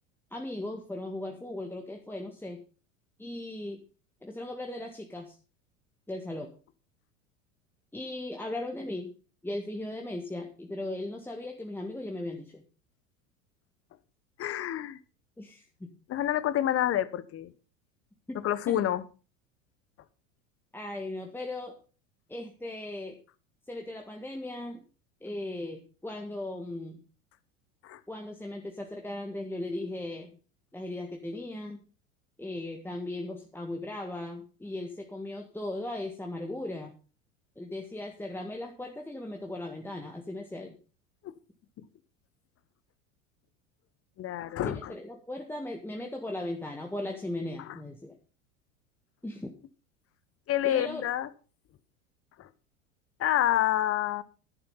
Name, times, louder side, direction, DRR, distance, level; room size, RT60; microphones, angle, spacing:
voice 1, 0.3-2.6 3.2-3.8 4.2-5.4 6.1-6.5 7.9-9.1 9.4-12.6 15.4-15.9 18.3-18.4 18.7-18.8 20.7-21.8 22.3-23.2 23.7-24.8 25.2-27.0 28.1-30.4 30.7-31.8 32.4-36.9 37.6-40.8 44.6-48.2 49.2-49.5 50.6-51.0, left 1 dB, 5° left, 2 dB, 1.8 m, -37 dB
voice 2, 14.4-15.0 16.1-17.5 18.3-19.0 27.8-28.0 41.2-41.3 44.2-44.9 47.6-47.8 50.5-51.3 52.4-52.5 53.2-54.2, left 12 dB, 35° left, 17 dB, 1.1 m, -28 dB
11.0 x 10.0 x 5.7 m, 0.36 s
hypercardioid pair, 80°, 39 cm